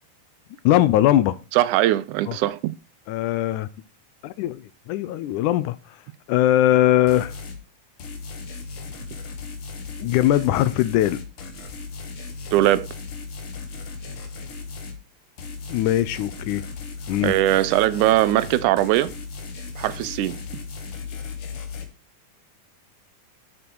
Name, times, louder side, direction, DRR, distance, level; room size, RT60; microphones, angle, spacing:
voice 1, 0.6-1.4 2.3-2.4 3.1-3.7 4.2-6.0 6.3-7.4 10.0-11.2 15.7-16.6 17.1-17.3, left 13 dB, 80° left, 1.9 m, -20 dB
voice 2, 1.5-2.7 12.5-12.9 17.2-19.1 19.8-20.4, right 15 dB, 75° right, 1.9 m, -20 dB
sound 1, 7.1-7.6 8.0-15.0 15.4-21.9, left 4 dB, 50° left, 2.1 m, -36 dB
13.0 x 6.2 x 4.6 m
omnidirectional pair, 3.9 m